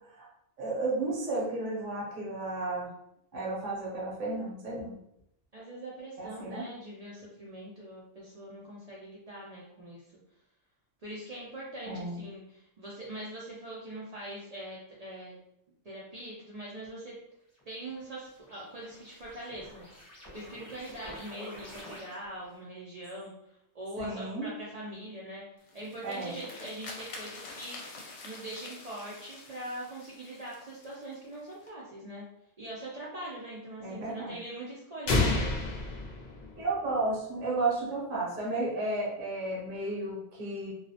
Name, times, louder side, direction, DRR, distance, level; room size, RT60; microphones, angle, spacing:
voice 1, 0.6-2.9 3.3-4.9 6.2-6.6 11.8-12.2 24.0-24.5 26.0-26.4 33.8-34.4 36.6-40.7, right 2 dB, 45° right, -4 dB, 0.8 m, -33 dB
voice 2, 5.5-10.0 11.0-15.3 15.8-17.1 17.7-19.9 20.3-23.3 23.7-25.4 25.7-27.8 28.2-32.2 32.6-35.3, right 1 dB, 65° right, -6 dB, 0.3 m, -42 dB
sound 1, 17.6-22.5, equal, 15° left, 0.7 m, -49 dB
sound 2, 25.6-31.7, left 3 dB, 70° left, 0.9 m, -47 dB
sound 3, 35.1-37.0, left 2 dB, 85° left, 0.4 m, -29 dB
2.3 x 2.0 x 2.6 m, 0.77 s
omnidirectional pair, 1.3 m